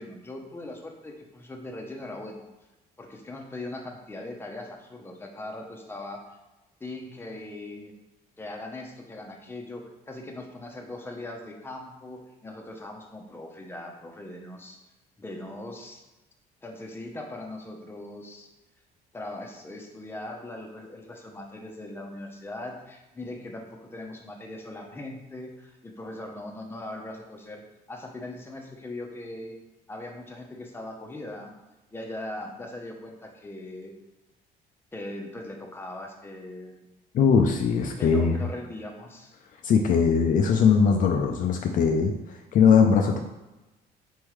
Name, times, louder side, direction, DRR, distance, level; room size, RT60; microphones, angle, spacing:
voice 1, 0.0-2.5 3.0-6.2 6.8-7.9 8.4-14.8 15.2-16.0 16.6-18.5 19.1-27.6 27.9-29.6 29.9-31.5 31.9-33.9 34.9-36.9 38.0-39.4, left 2 dB, 15° left, 1 dB, 0.7 m, -40 dB
voice 2, 37.1-38.4 39.6-43.2, left 6 dB, 50° left, 2 dB, 0.4 m, -21 dB
4.4 x 3.6 x 3.1 m, 1.0 s
cardioid pair, 110°, 17 cm